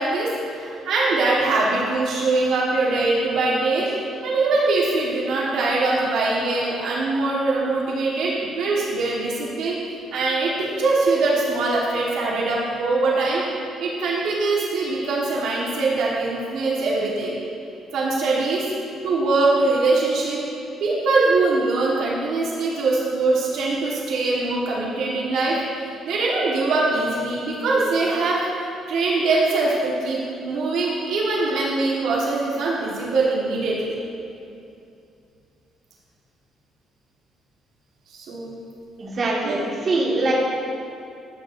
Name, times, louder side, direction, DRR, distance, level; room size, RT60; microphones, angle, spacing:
voice 1, 0.0-3.9 4.2-9.8 10.1-13.4 13.8-17.4 17.9-18.6 19.0-20.4 20.8-33.8 38.1-38.6 39.4-39.6 40.2-40.3, right 3 dB, 75° right, -5 dB, 1.5 m, -22 dB
voice 2, 39.0-40.3, right 2 dB, 40° right, -5 dB, 1.8 m, -23 dB
13.5 x 8.0 x 2.7 m, 2.6 s
cardioid pair, 130°, 0 cm